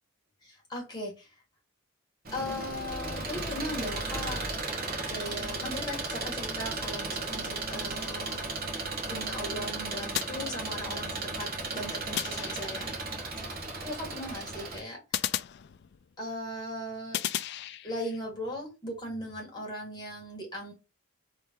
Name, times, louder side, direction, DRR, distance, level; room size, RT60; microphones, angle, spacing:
voice 1, 0.4-1.3 2.3-4.4 5.1-8.4 9.1-12.9 13.8-15.0 16.2-17.2 17.8-20.7, left 1 dB, 20° left, 2.0 m, -38 dB
Engine, 2.2-14.8, right 3 dB, 40° right, 1.3 m, -35 dB
sound 1, 10.1-11.1 12.2-13.0 15.1-16.2 17.1-18.2, left 12 dB, 50° left, 0.3 m, -35 dB
3.6 x 3.2 x 4.5 m
head